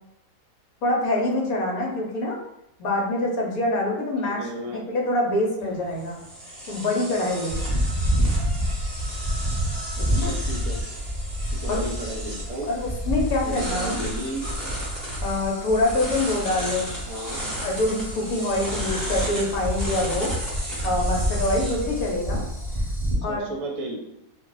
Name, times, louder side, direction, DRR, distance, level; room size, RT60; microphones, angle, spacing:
voice 1, 0.8-2.4 2.8-6.2 6.7-7.6 10.0-10.3 11.7-11.8 12.7-14.0 15.2-16.9 17.4-20.3 20.8-22.4 23.2-23.4, left 2 dB, 65° left, -1 dB, 1.1 m, -25 dB
voice 2, 4.2-4.8 10.2-10.8 11.6-12.7 13.4-14.5 17.1-17.4 23.3-24.0, right 1 dB, 60° right, 0 dB, 0.9 m, -33 dB
sound 1, 5.6-22.8, right 1 dB, ahead, 0.9 m, -35 dB
sound 2, 7.5-23.1, equal, 25° left, 0.7 m, -29 dB
2.6 x 2.3 x 3.8 m, 0.85 s
omnidirectional pair, 1.7 m